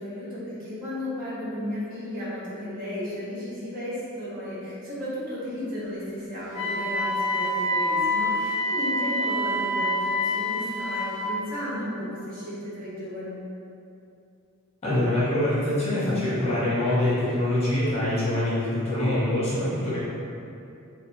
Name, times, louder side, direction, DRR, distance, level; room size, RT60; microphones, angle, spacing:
voice 1, 0.0-13.4, left 1 dB, 40° right, -11 dB, 1.2 m, -34 dB
Wind instrument woodwind instrument, 6.5-11.3, left 1 dB, 15° right, 1.2 m, -26 dB
voice 2, 14.8-20.0, left 1 dB, 30° left, -10 dB, 1.1 m, -24 dB
3.9 x 3.0 x 3.1 m, 2.6 s
head